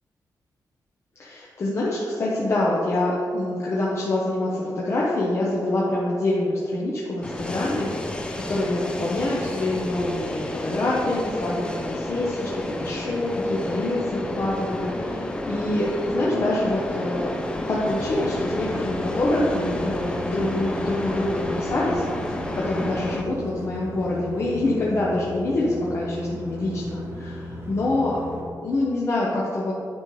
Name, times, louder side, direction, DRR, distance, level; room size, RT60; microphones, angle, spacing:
voice 1, 1.2-15.9 16.1-17.4 17.7-28.2 28.6-29.7, left 2 dB, 40° left, -6 dB, 0.8 m, -26 dB
sound 1, 7.2-23.2, left 1 dB, 15° left, 0.4 m, -31 dB
sound 2, 17.8-28.4, left 1 dB, 35° right, 0.9 m, -36 dB
9.4 x 5.1 x 3.2 m, 2.5 s
wide cardioid pair, 175°, 7 cm